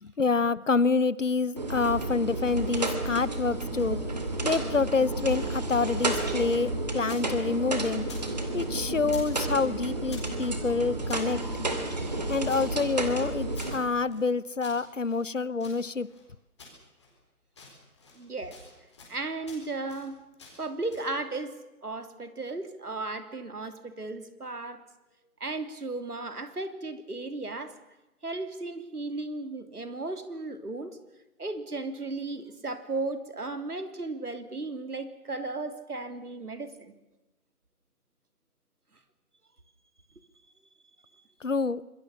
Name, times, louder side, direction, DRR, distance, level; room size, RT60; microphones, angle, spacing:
voice 1, 0.0-4.0 4.4-8.1 8.5-11.4 12.3-16.1 41.4-41.8, left 4 dB, 55° left, 20 dB, 0.9 m, -27 dB
sound 1, 1.6-13.8, right 2 dB, 30° right, 2.5 m, -31 dB
sound 2, 3.7-6.4 6.6-8.3 8.5-9.4 9.6-11.3 11.8-14.3 14.6-16.2 16.6-17.2 17.5-18.2 18.5-19.2 19.5-20.1 20.4-21.1, left 3 dB, 20° left, 4.5 m, -51 dB
voice 2, 18.1-18.6 19.1-20.2 20.6-24.8 25.4-27.7 28.2-31.0 31.4-36.9, right 3 dB, 85° right, 9 dB, 3.4 m, -35 dB
26.5 x 22.0 x 7.2 m, 1.0 s
figure-of-eight pair, 175°, 45 cm